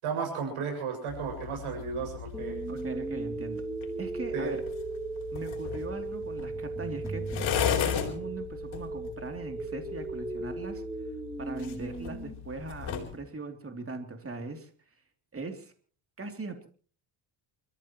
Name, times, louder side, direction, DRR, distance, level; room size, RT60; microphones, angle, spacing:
voice 1, 0.0-2.6 4.3-4.6, right 5 dB, 75° right, 2 dB, 7.1 m, -34 dB
sound 1, 1.1-13.2, left 9 dB, 70° left, 4.0 m, -37 dB
sound 2, 2.3-12.3, right 3 dB, 5° right, 3.0 m, -37 dB
voice 2, 2.7-3.6 4.0-4.6 5.3-7.2 7.7-10.8 11.4-14.7 15.3-15.7 16.2-16.7, right 3 dB, 25° right, 5 dB, 2.9 m, -40 dB
29.0 x 14.0 x 3.1 m, 0.43 s
cardioid pair, 95°, 50 cm